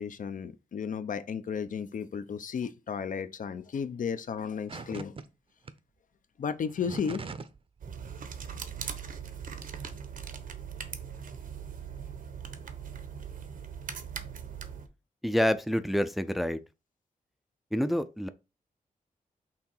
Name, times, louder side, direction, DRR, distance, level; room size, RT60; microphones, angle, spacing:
voice 1, 0.0-5.1 6.4-7.3, left 6 dB, 70° left, 0.7 m, -34 dB
sound 1, 4.7-5.2 5.7-5.8 6.6-7.6 7.9-8.2, right 4 dB, 40° right, 0.7 m, -41 dB
sound 2, 7.8-14.9, right 7 dB, 75° right, 1.0 m, -40 dB
voice 2, 15.2-16.6 17.7-18.3, equal, ahead, 0.4 m, -27 dB
5.9 x 3.6 x 4.4 m
wide cardioid pair, 105°, 14 cm